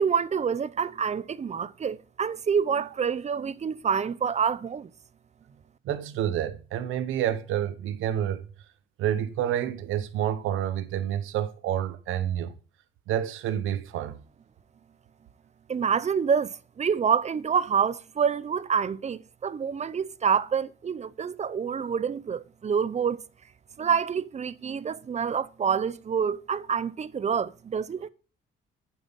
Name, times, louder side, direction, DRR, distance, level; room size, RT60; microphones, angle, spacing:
voice 1, 0.0-4.9 15.7-23.2 23.8-28.1, right 7 dB, 35° right, 0.6 m, -27 dB
voice 2, 5.8-8.4 9.0-12.5 13.1-14.2, right 10 dB, 90° right, 1.0 m, -28 dB
9.2 x 7.4 x 5.5 m
cardioid pair, 90°, 20 cm